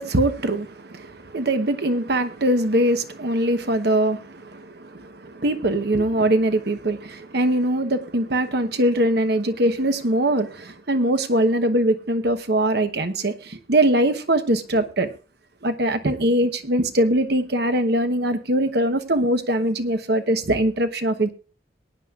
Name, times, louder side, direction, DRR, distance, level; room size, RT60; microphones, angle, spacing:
voice 1, 0.0-15.1 15.6-21.3, right 1 dB, 60° right, 9 dB, 1.1 m, -22 dB
22.0 x 9.6 x 2.5 m, 0.35 s
head